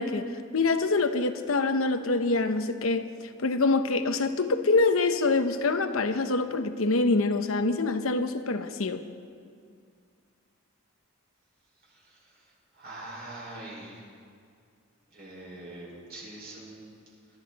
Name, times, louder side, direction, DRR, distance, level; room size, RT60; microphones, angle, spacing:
voice 1, 0.0-9.0, left 3 dB, 85° left, 9 dB, 0.9 m, -25 dB
voice 2, 12.7-14.0 15.1-17.0, right 2 dB, 50° right, -4 dB, 5.0 m, -43 dB
22.0 x 13.0 x 4.1 m, 2.2 s
head